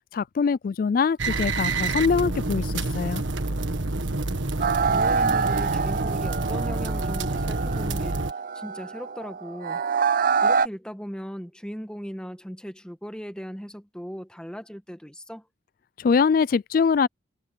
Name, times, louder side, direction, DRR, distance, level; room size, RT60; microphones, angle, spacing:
voice 1, 0.1-3.2 16.0-17.1, left 5 dB, 45° left, 0.3 m, -23 dB
sound 1, 1.2-8.3, right 2 dB, 75° right, 1.6 m, -28 dB
sound 2, 4.6-10.7, right 5 dB, 45° right, 0.5 m, -26 dB
voice 2, 4.8-8.2 8.5-9.8 10.4-15.5, equal, 5° left, 1.5 m, -38 dB
head